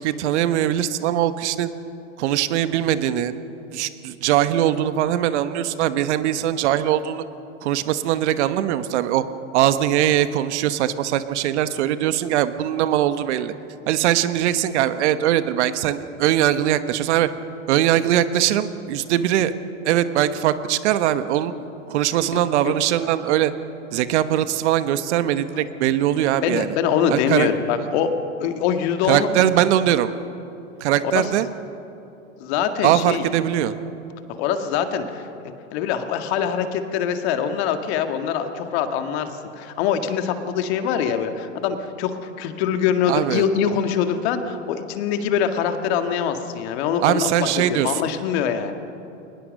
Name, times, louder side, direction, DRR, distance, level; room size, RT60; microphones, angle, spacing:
voice 1, 0.0-1.7 2.2-3.3 3.7-7.2 7.6-9.2 9.5-13.5 13.9-17.3 17.7-19.5 19.8-21.5 21.9-23.5 23.9-26.8 27.1-27.5 29.1-30.1 30.8-31.5 32.8-33.7 43.1-43.4 47.0-48.0, right 12 dB, 60° right, 12 dB, 1.2 m, -21 dB
voice 2, 26.4-29.3 31.2-31.3 32.4-33.3 34.4-35.2 35.7-39.3 39.6-48.7, left 8 dB, 55° left, 7 dB, 2.0 m, -23 dB
21.5 x 20.0 x 6.6 m, 2.8 s
hypercardioid pair, 110°, 39 cm